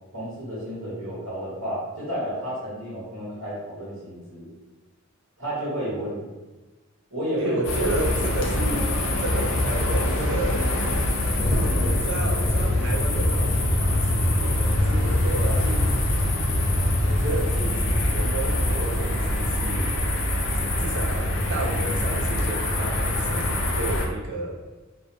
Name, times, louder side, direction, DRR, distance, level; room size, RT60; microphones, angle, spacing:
voice 1, 0.1-4.5 5.4-6.3 7.1-7.6 8.7-8.8 15.4-15.6, equal, 80° right, -9 dB, 0.9 m, -31 dB
voice 2, 7.4-10.7 11.8-16.3 17.0-20.0 20.8-24.6, right 2 dB, 60° right, 0 dB, 0.5 m, -32 dB
sound 1, 7.6-24.1, left 1 dB, 65° left, 0.4 m, -23 dB
2.4 x 2.3 x 2.6 m, 1.2 s
head